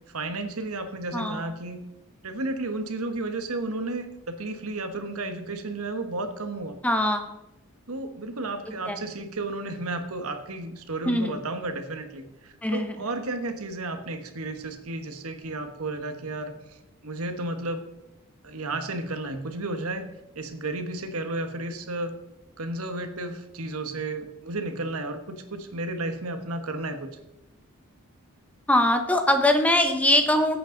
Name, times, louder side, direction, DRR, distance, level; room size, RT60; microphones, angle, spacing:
voice 1, 0.1-1.8 2.2-6.8 7.9-16.8 17.0-17.8 18.4-20.1 20.3-22.2 22.6-27.1, right 2 dB, 85° right, 7 dB, 1.3 m, -33 dB
voice 2, 1.1-1.5 6.8-7.4 8.9-9.0 11.1-11.4 12.6-12.9 28.7-30.6, left 1 dB, 5° left, 5 dB, 0.8 m, -22 dB
16.0 x 8.6 x 3.9 m, 0.93 s
head